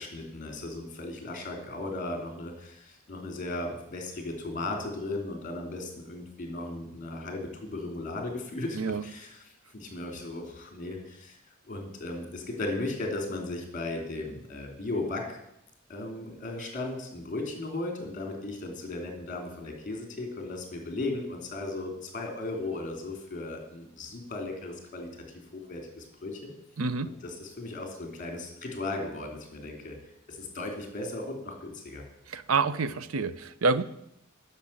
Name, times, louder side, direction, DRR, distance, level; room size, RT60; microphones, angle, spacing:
voice 1, 0.0-9.4 9.7-11.4 11.7-15.4 15.9-25.1 25.5-26.5 27.4-32.0, left 2 dB, 40° left, 3 dB, 3.1 m, -36 dB
voice 2, 26.8-27.1 32.3-33.8, right 4 dB, 80° right, 15 dB, 0.7 m, -27 dB
10.0 x 6.8 x 8.7 m, 0.79 s
head